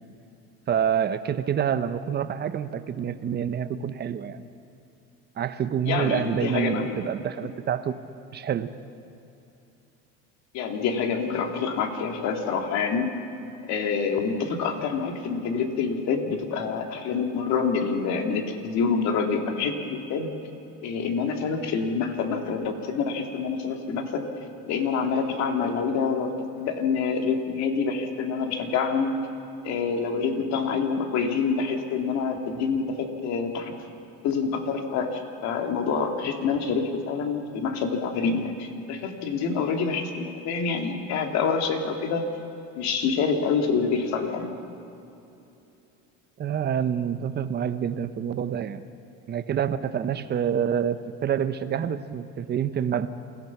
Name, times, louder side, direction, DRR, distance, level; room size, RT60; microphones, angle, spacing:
voice 1, 0.7-4.4 5.4-7.9 8.3-8.7 46.4-48.8 49.3-53.1, right 8 dB, 35° right, 11 dB, 0.9 m, -27 dB
voice 2, 5.9-7.0 10.5-13.2 13.7-20.3 20.8-24.3 24.7-26.3 26.6-29.2 29.6-33.7 34.2-42.3 42.7-44.5, left 5 dB, 60° left, 3 dB, 2.6 m, -27 dB
27.5 x 17.0 x 6.0 m, 2.8 s
supercardioid pair, 120°, 30 cm